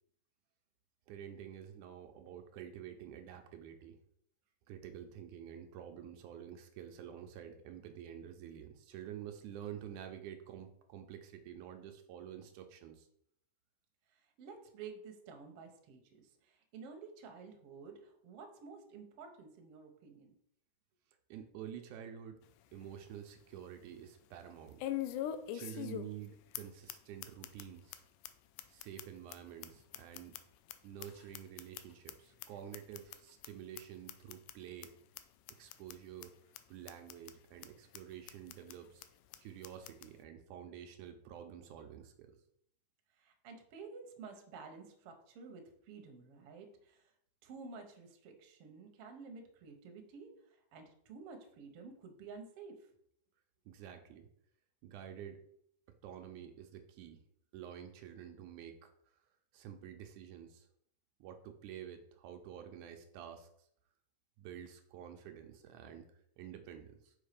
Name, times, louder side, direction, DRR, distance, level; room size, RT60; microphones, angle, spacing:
voice 1, 1.1-4.0 4.7-13.1 21.3-22.4 22.7-24.8 25.5-28.0 28.7-30.4 30.8-34.9 35.6-39.1 39.4-42.4 53.7-54.3 54.8-55.4 56.0-57.2 57.5-59.2 59.5-60.7 61.2-63.7 64.4-66.1 66.4-67.1, right 9 dB, 85° right, 5 dB, 2.1 m, -49 dB
voice 2, 14.1-20.4 43.2-47.1 47.4-52.9, right 5 dB, 60° right, 4 dB, 1.7 m, -52 dB
sound 1, 22.4-22.5 23.0-23.1 24.8-26.3 26.5-26.6 26.9-27.0 27.2-27.6 27.9-28.0 28.2-28.3 28.6-30.7 31.0-32.1 32.4-32.5 32.7-33.2 33.4-33.5 33.8-33.9 34.1-34.5 34.8-34.9 35.2-35.3 35.5-35.9 36.2-36.3 36.6-36.7 36.9-37.3 37.6-37.7 37.9-38.0 38.3-38.7 39.0-39.1 39.3-39.4 39.6-40.1, left 12 dB, 85° left, 2.1 m, -42 dB
5.6 x 5.4 x 5.0 m, 0.70 s
omnidirectional pair, 3.6 m